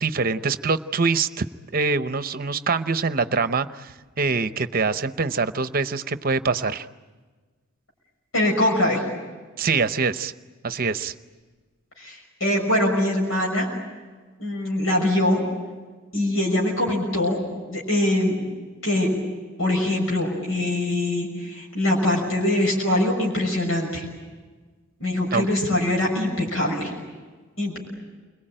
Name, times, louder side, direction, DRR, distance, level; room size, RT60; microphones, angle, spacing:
voice 1, 0.0-1.5 1.7-6.9 9.6-10.3 10.6-11.1 25.3-25.4, right 4 dB, 45° right, 12 dB, 0.8 m, -24 dB
voice 2, 8.3-9.0 12.0-13.7 14.4-15.4 16.1-17.4 17.7-18.5 18.8-19.1 19.6-24.1 25.0-26.9 27.6-27.8, left 1 dB, 85° left, -1 dB, 6.2 m, -23 dB
29.5 x 22.0 x 8.9 m, 1.4 s
head